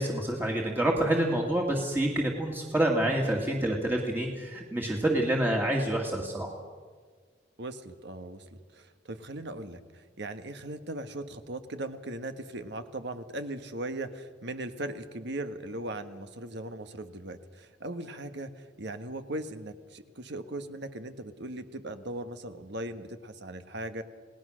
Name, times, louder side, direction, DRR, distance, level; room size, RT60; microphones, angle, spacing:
voice 1, 0.0-6.6, right 1 dB, 10° right, 0 dB, 2.1 m, -27 dB
voice 2, 7.6-24.0, right 1 dB, 65° right, 9 dB, 1.5 m, -39 dB
29.0 x 18.5 x 6.4 m, 1.5 s
head